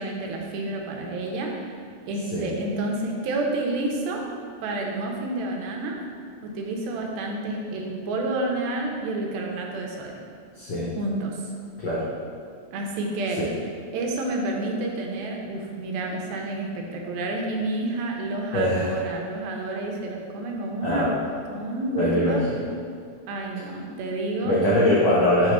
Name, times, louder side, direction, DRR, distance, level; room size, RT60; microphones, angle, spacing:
voice 1, 0.0-1.6 2.1-4.2 4.6-6.0 6.4-10.1 11.0-11.4 12.7-13.4 13.9-21.1 21.5-22.4 23.3-24.6, right 2 dB, 90° right, 0 dB, 2.6 m, -29 dB
voice 2, 10.6-10.9 11.8-12.1 13.4-13.5 18.5-19.0 20.8-21.2 22.0-22.7 24.4-25.5, left 1 dB, 80° left, -8 dB, 1.5 m, -22 dB
6.3 x 3.0 x 5.5 m, 2.2 s
omnidirectional pair, 4.2 m